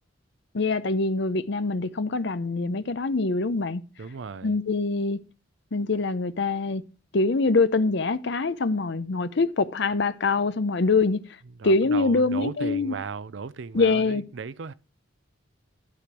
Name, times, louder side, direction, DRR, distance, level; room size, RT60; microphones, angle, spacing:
voice 1, 0.5-3.8 4.4-5.2 5.7-6.8 7.1-11.2 11.6-12.9 13.7-14.2, left 3 dB, 55° left, 0.6 m, -24 dB
voice 2, 4.0-4.5 11.6-14.7, right 5 dB, 60° right, 0.5 m, -36 dB
11.5 x 5.1 x 6.0 m
head